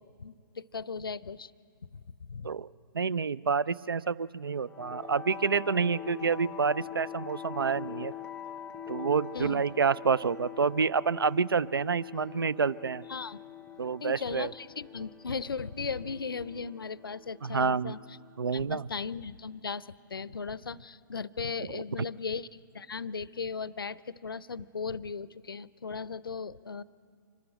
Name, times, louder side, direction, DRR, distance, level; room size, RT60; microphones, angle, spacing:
voice 1, 0.0-1.5 1.9-2.5 9.3-9.6 13.1-13.4 14.0-18.0 18.5-26.8, left 5 dB, 75° left, 20 dB, 0.5 m, -37 dB
voice 2, 2.9-8.1 8.9-13.0 13.8-14.5 17.4-18.0 18.4-18.8 21.7-21.8, right 5 dB, 80° right, 20 dB, 0.4 m, -28 dB
sound 1, 4.7-18.8, left 9 dB, 10° left, 0.6 m, -44 dB
25.0 x 12.5 x 9.0 m, 2.2 s
figure-of-eight pair, 125°, 12 cm